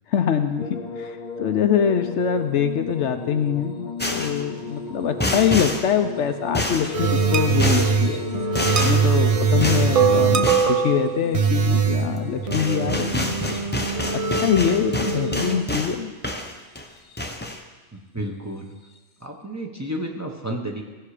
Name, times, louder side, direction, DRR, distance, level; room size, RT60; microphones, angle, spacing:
voice 1, 0.1-8.2 8.8-13.6 14.3-16.1, left 8 dB, 75° left, 7 dB, 1.0 m, -24 dB
sound 1, 0.6-15.8 16.7-17.4 18.8-19.0, left 4 dB, 45° left, 0.8 m, -37 dB
sound 2, 4.0-4.4 5.2-5.9 6.5-6.9 7.6-8.0 8.5-9.1 9.6-9.9 10.4-10.8 12.2-12.3 12.5-16.0 16.2-16.9 17.2-17.6, left 1 dB, 10° left, 0.7 m, -27 dB
sound 3, 6.9-15.6, right 5 dB, 40° right, 0.6 m, -22 dB
voice 2, 17.9-18.7 19.2-20.8, right 1 dB, 15° right, 0 dB, 0.9 m, -31 dB
16.0 x 5.6 x 4.9 m, 1.3 s
omnidirectional pair, 1.2 m